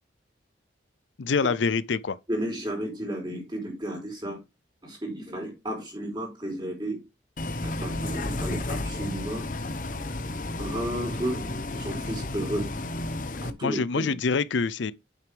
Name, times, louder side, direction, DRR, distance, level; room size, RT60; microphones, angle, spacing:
voice 1, 1.2-2.2 13.6-14.9, left 5 dB, 80° left, 0.5 m, -26 dB
voice 2, 2.3-4.4 4.8-7.0 7.6-9.5 10.6-11.5 11.7-12.7 13.4-14.2, right 1 dB, 25° right, 4.4 m, -33 dB
Bus, 7.4-13.5, left 2 dB, 45° left, 0.9 m, -32 dB
8.9 x 6.6 x 3.4 m
head